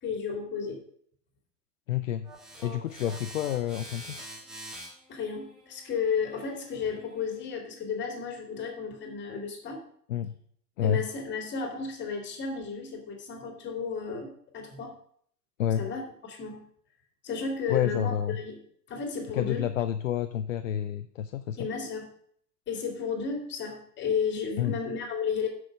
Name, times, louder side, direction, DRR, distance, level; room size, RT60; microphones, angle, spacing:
voice 1, 0.0-0.8 5.1-9.8 10.8-14.9 15.8-16.6 17.2-18.6 18.9-19.7 21.6-22.1 22.7-25.5, left 5 dB, 20° left, 3 dB, 2.4 m, -33 dB
voice 2, 1.9-2.3 2.6-4.1 10.1-10.3 10.8-11.0 15.6-15.9 17.7-18.4 19.3-21.6 24.6-24.8, left 10 dB, 55° left, 10 dB, 0.6 m, -29 dB
sound 1, 2.2-7.4, right 1 dB, ahead, 0.3 m, -46 dB
7.8 x 6.3 x 6.3 m, 0.63 s
figure-of-eight pair, 95°, 48 cm